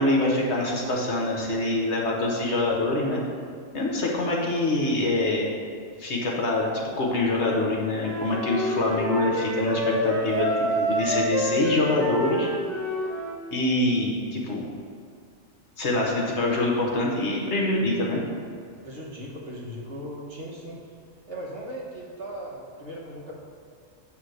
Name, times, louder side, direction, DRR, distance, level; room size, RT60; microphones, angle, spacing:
voice 1, 0.0-3.2 3.7-5.5 6.0-6.7 7.0-12.5 13.5-14.6 15.8-18.2, left 2 dB, 60° left, -2 dB, 1.3 m, -25 dB
Wind instrument woodwind instrument, 8.0-13.4, right 1 dB, 80° right, 1.5 m, -28 dB
voice 2, 18.8-20.8 21.3-23.3, equal, 50° right, -4 dB, 1.4 m, -38 dB
8.3 x 3.3 x 6.4 m, 2.3 s
omnidirectional pair, 1.4 m